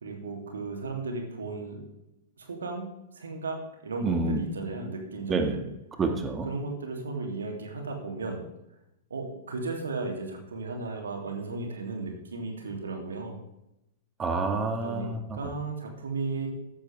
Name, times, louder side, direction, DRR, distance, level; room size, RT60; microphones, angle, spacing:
voice 1, 0.0-1.8 2.4-2.9 3.1-5.6 6.4-8.4 9.1-13.4 14.8-16.5, right 3 dB, 70° right, 2 dB, 3.0 m, -35 dB
voice 2, 4.0-4.4 5.3-5.6 6.0-6.5 14.2-15.2, right 3 dB, 20° right, 5 dB, 1.9 m, -27 dB
14.0 x 11.5 x 3.5 m, 0.87 s
figure-of-eight pair, 100°, 0 cm